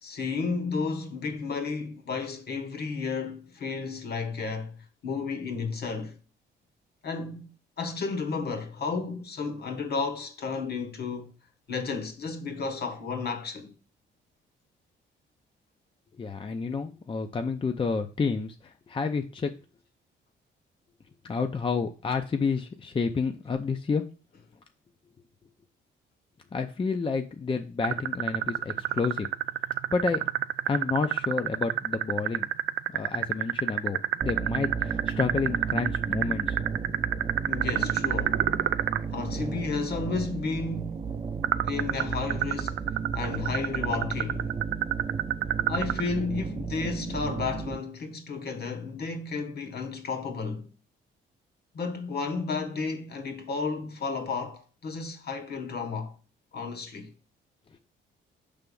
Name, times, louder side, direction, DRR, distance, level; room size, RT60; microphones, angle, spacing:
voice 1, 0.0-4.8 5.0-6.2 7.0-11.3 11.7-13.7 37.5-38.5 39.1-41.1 41.6-42.8 43.1-44.5 45.7-50.7 51.7-56.1 56.5-57.1, left 4 dB, 55° left, 1.4 m, -32 dB
voice 2, 16.2-19.5 21.2-24.0 26.5-29.3 29.9-30.3 30.7-32.5 32.9-36.6, left 4 dB, 25° left, 0.6 m, -30 dB
sound 1, 27.8-39.0 41.4-46.1, right 14 dB, 75° right, 0.4 m, -27 dB
sound 2, 34.2-47.8, right 5 dB, 25° right, 0.6 m, -34 dB
5.8 x 3.5 x 5.3 m
cardioid pair, 90°, 20 cm